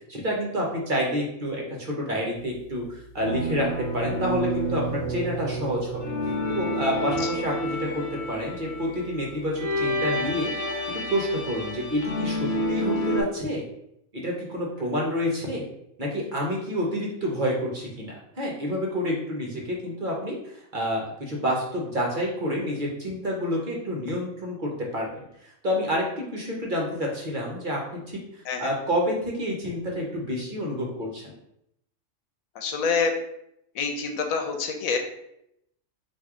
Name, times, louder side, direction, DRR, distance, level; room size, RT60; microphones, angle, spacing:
voice 1, 0.1-3.7 3.9-6.0 6.5-10.5 11.1-13.6 14.1-15.6 16.0-28.2 28.6-31.3, equal, 45° right, -2 dB, 0.9 m, -28 dB
sound 1, 3.2-13.2, equal, 60° left, 1.2 m, -29 dB
voice 2, 32.6-33.1 33.7-35.0, left 5 dB, 85° left, 4 dB, 1.1 m, -27 dB
4.6 x 2.6 x 3.6 m, 0.77 s
omnidirectional pair, 1.4 m